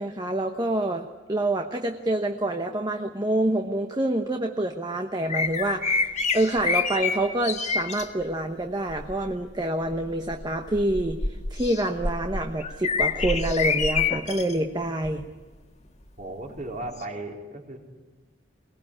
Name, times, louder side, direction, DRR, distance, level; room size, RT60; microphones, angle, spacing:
voice 1, 0.0-6.1 6.3-11.2 11.5-15.3, right 1 dB, 25° right, 5 dB, 1.0 m, -27 dB
sound 1, 5.3-8.0 8.9-9.2 9.9-14.5 15.0-15.2 17.0-17.1, left 4 dB, 40° left, 1.7 m, -27 dB
voice 2, 16.2-17.8, right 2 dB, 45° right, 0 dB, 4.0 m, -36 dB
23.0 x 19.0 x 9.9 m, 1.2 s
head